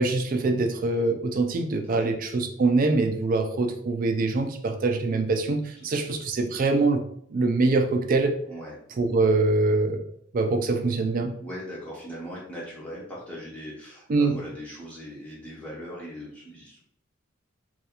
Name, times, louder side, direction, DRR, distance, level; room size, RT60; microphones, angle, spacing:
voice 1, 0.0-7.0 7.3-8.3 9.0-10.0 10.3-11.4 14.1-14.4, right 3 dB, 45° right, 5 dB, 0.4 m, -24 dB
voice 2, 11.4-16.8, equal, 5° left, -6 dB, 0.5 m, -39 dB
2.4 x 2.4 x 2.8 m, 0.67 s
head